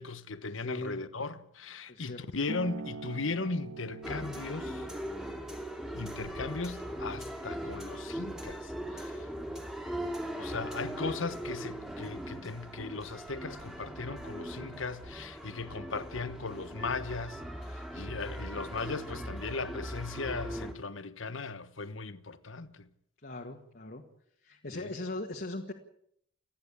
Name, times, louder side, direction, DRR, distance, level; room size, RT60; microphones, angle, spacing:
voice 1, 0.0-4.9 5.9-9.3 10.3-17.4 17.7-22.9 24.7-24.9, left 3 dB, 80° left, 1.2 m, -37 dB
voice 2, 0.5-1.0 1.9-2.2 23.2-24.0 24.4-25.7, left 2 dB, 50° left, 1.9 m, -39 dB
sound 1, 2.5-9.6, right 4 dB, 85° right, 1.7 m, -47 dB
sound 2, 4.0-20.7, equal, 5° right, 2.4 m, -40 dB
29.0 x 10.5 x 8.5 m
head